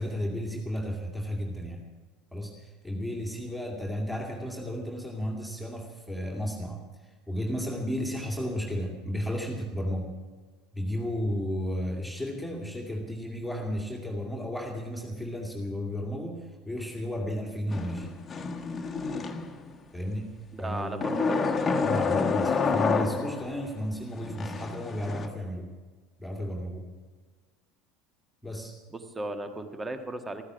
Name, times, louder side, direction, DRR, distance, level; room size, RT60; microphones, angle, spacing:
voice 1, 0.0-1.8 2.3-10.1 10.7-18.1 19.9-21.0 21.8-25.7 26.2-26.9 28.4-28.8, equal, ahead, -1 dB, 2.2 m, -33 dB
sound 1, 17.7-19.8 21.0-23.6 24.2-25.3, left 4 dB, 25° left, 1.3 m, -29 dB
voice 2, 20.5-21.5 28.9-30.4, right 2 dB, 15° right, 8 dB, 1.4 m, -35 dB
15.0 x 14.5 x 5.9 m, 1.4 s
figure-of-eight pair, 70°, 0 cm